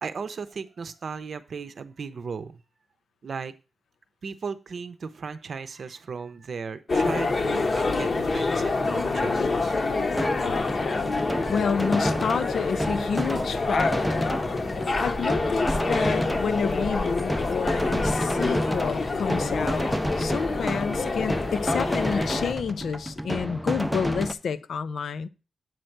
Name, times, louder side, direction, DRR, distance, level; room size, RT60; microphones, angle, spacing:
voice 1, 0.0-2.6 3.2-3.5 4.2-9.8, right 5 dB, 50° right, 0.7 m, -36 dB
sound 1, 6.9-22.5, left 3 dB, 35° left, 0.9 m, -27 dB
sound 2, 10.1-24.3, equal, ahead, 0.5 m, -31 dB
voice 2, 11.5-14.4 15.0-19.9 20.2-25.3, left 6 dB, 70° left, 0.5 m, -29 dB
7.9 x 4.5 x 6.5 m
wide cardioid pair, 165°, 0 cm